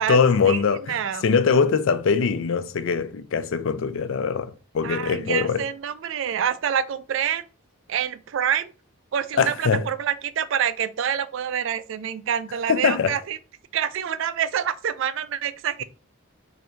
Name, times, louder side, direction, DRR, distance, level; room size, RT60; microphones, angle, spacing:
voice 1, 0.0-5.6 9.4-9.8 12.7-13.1, left 5 dB, 65° left, 0.4 m, -22 dB
voice 2, 0.9-1.2 4.8-7.4 7.9-8.7 9.1-13.4 13.7-15.8, right 8 dB, 60° right, 0.3 m, -26 dB
3.3 x 2.6 x 4.3 m
head